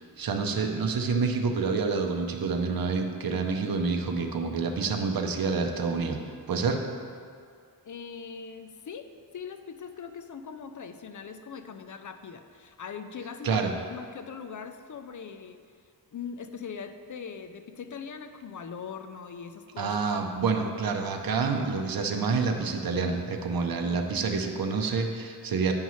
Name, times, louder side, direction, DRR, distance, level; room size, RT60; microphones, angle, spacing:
voice 1, 0.0-6.2 6.5-6.8 13.4-13.7 19.8-25.7, right 4 dB, 55° right, 4 dB, 0.8 m, -28 dB
voice 2, 7.8-9.1 9.3-15.6 16.1-19.9, left 6 dB, 50° left, 9 dB, 0.5 m, -41 dB
9.5 x 5.4 x 3.1 m, 2.2 s
cardioid pair, 75°, 41 cm